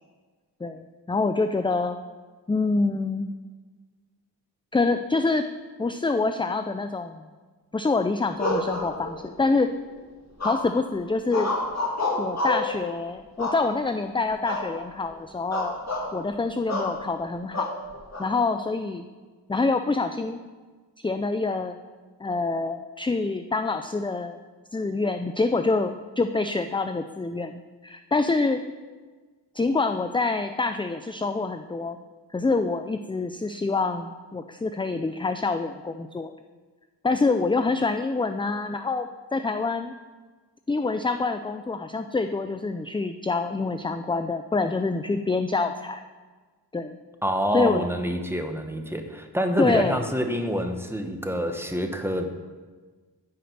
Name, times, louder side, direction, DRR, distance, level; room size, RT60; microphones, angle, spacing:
voice 1, 0.6-2.0 2.5-3.3 4.7-5.5 5.8-7.2 7.7-9.7 10.4-11.5 12.2-15.8 16.1-17.7 18.2-19.1 19.5-20.4 21.0-21.8 22.2-24.4 24.7-28.6 29.5-32.0 32.3-36.3 37.0-39.9 40.7-46.0 46.7-47.0 47.5-47.8 49.6-50.0, left 3 dB, 15° left, 8 dB, 0.3 m, -26 dB
sound 1, 8.4-9.4 10.4-10.9 11.3-12.7 13.4-14.0 14.4-14.7 15.0-15.2 15.5-16.1 16.7-16.9 17.5-18.3, left 2 dB, 40° left, 2.2 m, -28 dB
voice 2, 47.2-52.2, equal, 5° right, 5 dB, 1.1 m, -27 dB
10.0 x 5.0 x 7.9 m, 1.4 s
wide cardioid pair, 65°, 41 cm